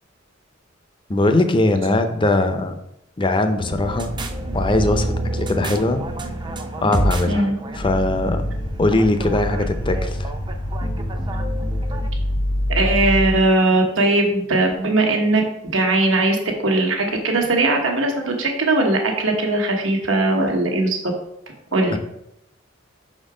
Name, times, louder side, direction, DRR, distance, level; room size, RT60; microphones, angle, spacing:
voice 1, 1.1-2.7 3.2-4.1 4.5-6.0 6.8-7.5 7.8-8.4 8.8-10.3 21.9-22.0, left 2 dB, 25° left, 8 dB, 0.6 m, -20 dB
sound 1, 3.6-12.1, right 1 dB, 25° right, 0.6 m, -29 dB
sound 2, 7.7-13.5, left 1 dB, 75° left, 1.1 m, -25 dB
voice 2, 12.7-21.0 21.7-22.0, right 2 dB, 75° right, 2 dB, 1.4 m, -19 dB
5.8 x 4.3 x 4.9 m, 0.79 s
head